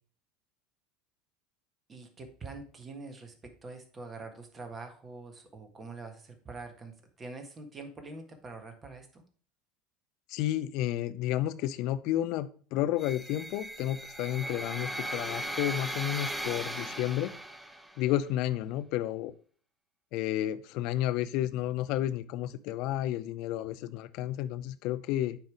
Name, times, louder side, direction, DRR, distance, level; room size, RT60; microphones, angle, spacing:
voice 1, 1.9-9.2, right 3 dB, 25° right, 6 dB, 1.6 m, -45 dB
voice 2, 10.3-17.4 18.0-19.3 20.1-25.4, left 13 dB, 60° left, 13 dB, 0.5 m, -31 dB
sound 1, 13.0-18.0, right 1 dB, 5° right, 0.7 m, -38 dB
9.1 x 3.5 x 4.7 m, 0.43 s
hypercardioid pair, 75°, 0 cm